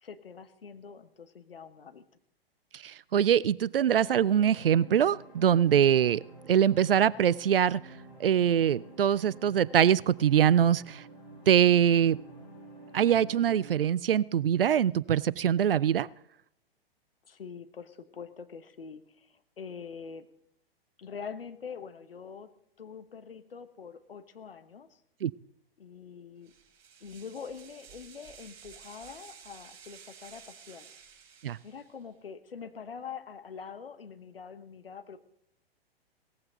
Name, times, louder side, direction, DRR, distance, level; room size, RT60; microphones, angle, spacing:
voice 1, 0.0-2.1 17.2-20.3 21.0-22.5 22.8-24.9 25.8-26.5 27.0-30.9 31.6-35.2, left 6 dB, 70° left, 10 dB, 1.3 m, -44 dB
voice 2, 2.7-6.2 6.5-7.8 8.2-11.1 11.5-12.2 12.9-16.1 25.2-25.3 31.4-31.6, right 9 dB, 65° right, 23 dB, 0.5 m, -23 dB
sound 1, 3.8-13.8, right 1 dB, 15° left, 5.4 m, -50 dB
sound 2, 26.4-32.0, right 7 dB, 35° right, 3.1 m, -53 dB
18.0 x 14.5 x 3.9 m, 0.75 s
figure-of-eight pair, 110°, 30 cm